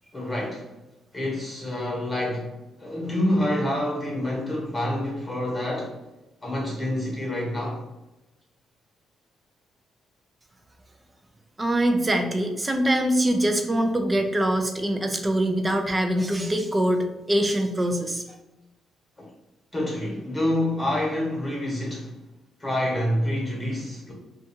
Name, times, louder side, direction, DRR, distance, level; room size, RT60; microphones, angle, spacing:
voice 1, 0.1-0.7 1.1-2.5 2.8-5.9 6.4-7.8 19.2-19.3 19.7-22.1 22.6-24.1, left 1 dB, 20° left, 1.1 m, -27 dB
voice 2, 11.6-18.2, right 1 dB, 20° right, 0.4 m, -23 dB
2.6 x 2.3 x 2.7 m
cardioid pair, 90°, 0 cm